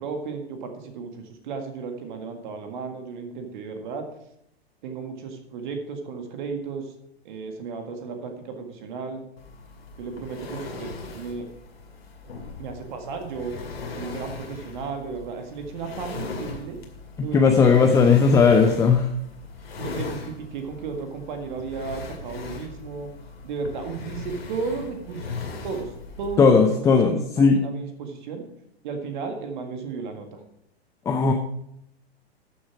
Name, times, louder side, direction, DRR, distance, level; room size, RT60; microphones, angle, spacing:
voice 1, 0.0-4.1 4.8-6.9 7.2-9.2 10.0-11.5 12.6-13.5 13.9-16.8 17.2-18.8 19.8-23.1 23.4-25.9 26.2-28.4 28.8-30.4, right 5 dB, 45° right, 5 dB, 1.9 m, -34 dB
sound 1, 9.4-26.4, left 4 dB, 70° left, 2.3 m, -38 dB
voice 2, 17.2-19.0 26.4-27.6 31.1-31.3, left 5 dB, 10° left, 4 dB, 0.5 m, -17 dB
13.0 x 7.1 x 4.6 m, 0.77 s
figure-of-eight pair, 105°, 32 cm